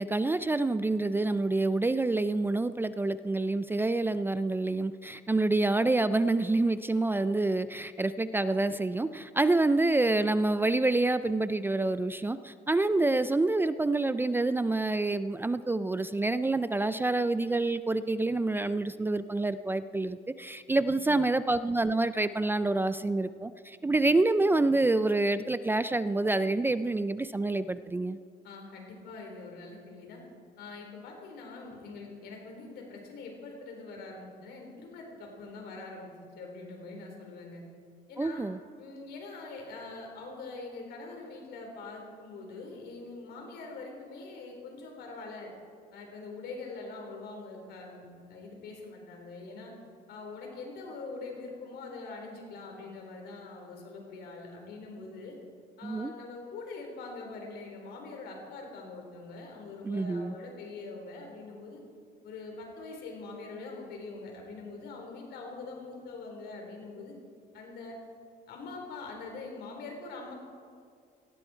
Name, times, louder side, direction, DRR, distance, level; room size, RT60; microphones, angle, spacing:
voice 1, 0.0-28.2 38.2-38.6 55.8-56.1 59.8-60.3, right 2 dB, 10° right, 13 dB, 0.4 m, -27 dB
voice 2, 28.4-30.2 30.6-37.6 38.1-38.4 38.8-45.5 45.9-49.7 50.1-55.3 55.8-61.8 62.2-67.1 67.5-68.0 68.5-70.3, left 3 dB, 75° left, 1 dB, 4.5 m, -43 dB
18.0 x 16.0 x 4.5 m, 2.2 s
cardioid pair, 110°, 17 cm